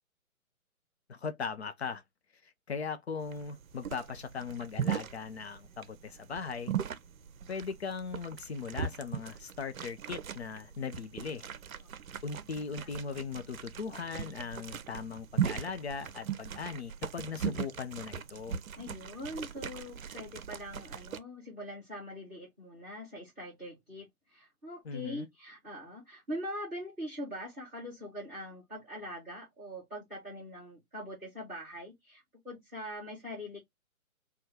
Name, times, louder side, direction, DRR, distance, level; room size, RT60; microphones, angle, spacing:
voice 1, 1.1-2.0 2.4-6.7 7.5-11.5 12.2-18.6 24.8-25.3, left 5 dB, 50° left, 0.5 m, -39 dB
sound 1, 3.2-21.2, right 8 dB, 70° right, 0.6 m, -39 dB
voice 2, 18.8-33.6, equal, ahead, 0.5 m, -43 dB
2.8 x 2.2 x 3.4 m
figure-of-eight pair, 135°, 43 cm